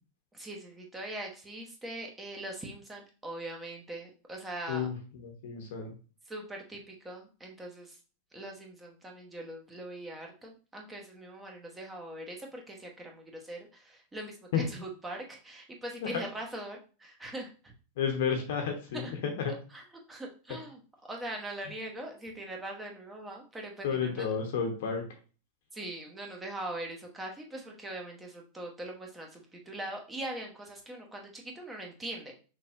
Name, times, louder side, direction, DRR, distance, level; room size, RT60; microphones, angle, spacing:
voice 1, 0.3-4.9 6.3-8.0 8.3-17.5 18.9-19.1 19.7-19.8 20.1-20.8 21.1-24.3 25.7-32.3, right 1 dB, 15° right, 1 dB, 1.2 m, -41 dB
voice 2, 4.7-6.0 14.5-14.6 16.0-16.2 18.0-19.5 23.8-25.0, left 6 dB, 55° left, 3 dB, 0.9 m, -31 dB
5.8 x 2.9 x 2.6 m, 0.36 s
figure-of-eight pair, 90°, 0 cm